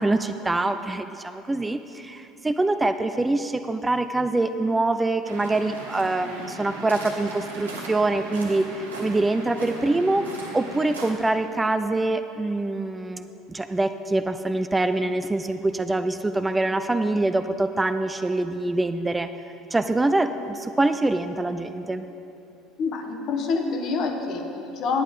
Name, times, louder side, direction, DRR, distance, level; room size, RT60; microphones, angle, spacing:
voice 1, 0.0-19.3 19.7-22.1, right 2 dB, 15° right, 9 dB, 0.4 m, -25 dB
Waves surf, 5.2-11.1, right 2 dB, 80° right, 1.2 m, -38 dB
voice 2, 22.8-25.0, left 4 dB, 50° left, 5 dB, 1.0 m, -27 dB
9.9 x 9.1 x 5.0 m, 2.8 s
figure-of-eight pair, 65°, 0 cm